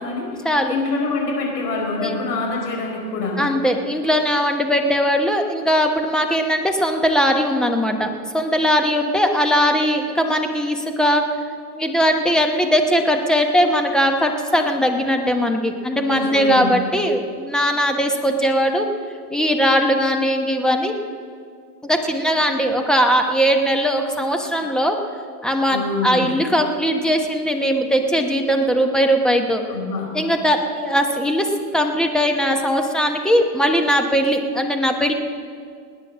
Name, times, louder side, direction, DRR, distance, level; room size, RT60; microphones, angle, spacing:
voice 1, 0.0-0.4 0.7-3.4 16.0-16.8 25.7-26.4 29.7-30.1, left 3 dB, 70° left, 0 dB, 4.9 m, -25 dB
voice 2, 3.4-11.3 11.7-18.9 19.3-20.9 21.8-25.0 25.4-29.6 30.1-35.1, equal, ahead, 4 dB, 1.0 m, -19 dB
18.5 x 9.8 x 6.3 m, 2.1 s
hypercardioid pair, 125°, 48 cm